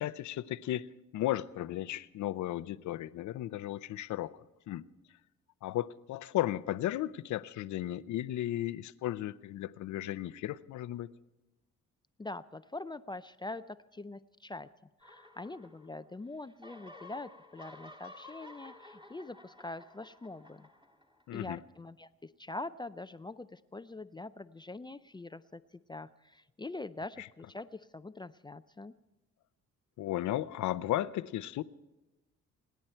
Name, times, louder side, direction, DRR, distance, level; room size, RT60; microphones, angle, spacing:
voice 1, 0.0-4.4 4.7-4.8 5.6-11.1 21.3-21.6 27.2-27.3 30.0-31.6, left 13 dB, 75° left, 0.7 m, -35 dB
voice 2, 12.2-14.7 15.0-20.7 21.3-28.9, left 2 dB, 15° left, 0.4 m, -44 dB
sound 1, 15.0-16.1 16.4-21.4, left 2 dB, 15° right, 2.1 m, -53 dB
29.0 x 10.5 x 4.5 m
cardioid pair, 90°, 30 cm